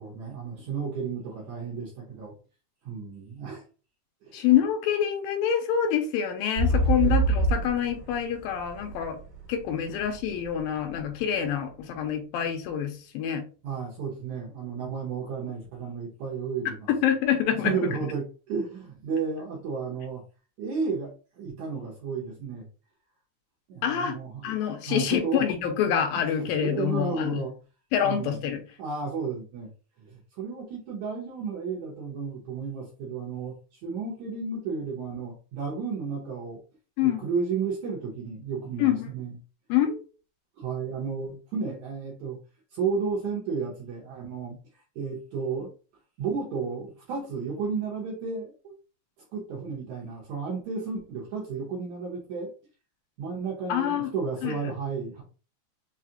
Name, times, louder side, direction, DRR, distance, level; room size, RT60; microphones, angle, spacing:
voice 1, 0.0-2.3 2.9-3.6 4.2-4.5 6.7-7.2 13.6-16.9 17.6-20.2 20.6-22.7 23.7-24.6 24.9-25.5 26.4-27.5 28.0-28.4 28.8-29.7 30.0-36.6 37.0-39.4 40.6-42.4 42.7-45.7 46.2-48.7 49.3-52.5 53.2-55.2, right 5 dB, 70° right, 1.8 m, -33 dB
voice 2, 4.3-9.2 9.5-13.4 16.9-18.0 23.8-24.2 24.4-27.4 27.9-28.6 37.0-37.2 38.8-39.1 39.7-40.0 53.7-54.1 54.4-54.7, left 9 dB, 85° left, 2.4 m, -26 dB
sound 1, 6.6-10.4 11.0-11.1, right 3 dB, 55° right, 1.8 m, -25 dB
5.7 x 2.4 x 2.8 m
omnidirectional pair, 4.2 m